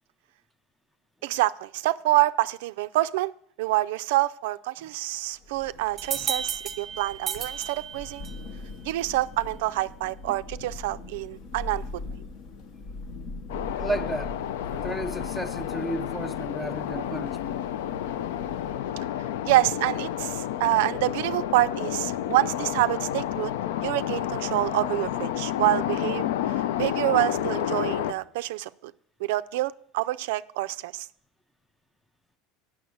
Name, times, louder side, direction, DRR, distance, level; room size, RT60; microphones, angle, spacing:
voice 1, 1.2-3.3 3.6-8.3 8.8-12.0 19.4-23.5 23.8-28.9 29.2-31.1, right 17 dB, 75° right, 0.3 m, -27 dB
Thunder, 5.4-19.0, left 2 dB, 55° left, 1.0 m, -42 dB
sound 1, 6.0-8.5, right 8 dB, 25° right, 0.8 m, -33 dB
sound 2, 13.5-28.1, left 11 dB, 80° left, 0.4 m, -30 dB
voice 2, 13.8-14.4 14.8-17.6, right 1 dB, 5° left, 0.5 m, -33 dB
8.1 x 6.1 x 7.7 m
supercardioid pair, 135°, 0 cm